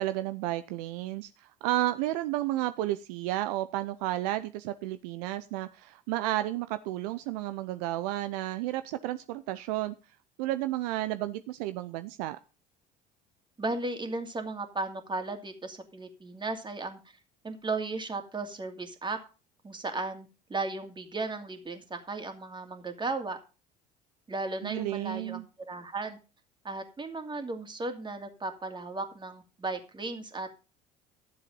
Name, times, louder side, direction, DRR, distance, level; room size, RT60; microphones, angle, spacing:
voice 1, 0.0-9.9 10.4-12.4 24.6-25.4, right 15 dB, 70° right, 12 dB, 0.6 m, -32 dB
voice 2, 13.6-17.0 17.4-19.2 19.6-23.4 24.3-26.2 26.6-30.6, right 3 dB, 20° right, 6 dB, 2.5 m, -35 dB
12.5 x 7.6 x 5.3 m, 0.33 s
hypercardioid pair, 60°, 21 cm